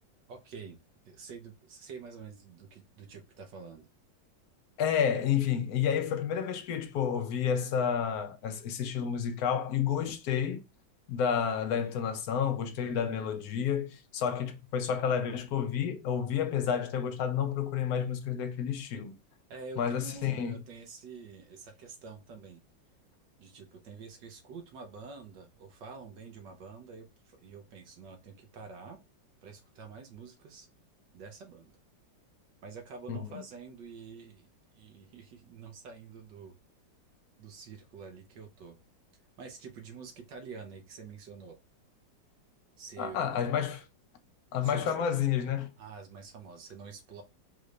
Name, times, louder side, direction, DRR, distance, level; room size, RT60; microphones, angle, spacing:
voice 1, 0.3-0.8 1.0-3.9 19.5-22.6 23.4-29.0 29.4-30.7 31.1-31.8 32.6-34.5 34.7-36.6 37.4-38.8 39.4-41.6 42.8-43.3 44.6-44.9 45.8-47.2, right 5 dB, 70° right, 1.6 m, -47 dB
voice 2, 4.8-10.6 11.1-19.2 19.8-20.6 33.1-33.4 43.0-43.8 44.5-45.7, left 8 dB, 60° left, 1.1 m, -30 dB
4.9 x 2.6 x 3.2 m
omnidirectional pair, 2.0 m